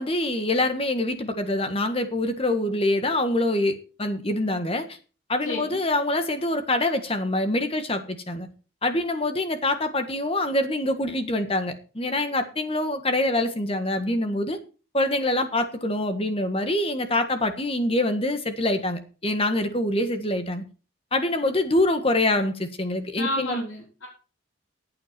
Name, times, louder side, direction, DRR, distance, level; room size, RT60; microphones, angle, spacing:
voice 1, 0.0-5.0 5.3-8.5 8.8-14.6 14.9-20.6 21.1-23.6, left 1 dB, 30° left, 8 dB, 1.5 m, -25 dB
voice 2, 5.4-5.8 23.2-24.1, left 1 dB, 85° left, -1 dB, 3.9 m, -31 dB
14.5 x 8.8 x 4.5 m, 0.36 s
head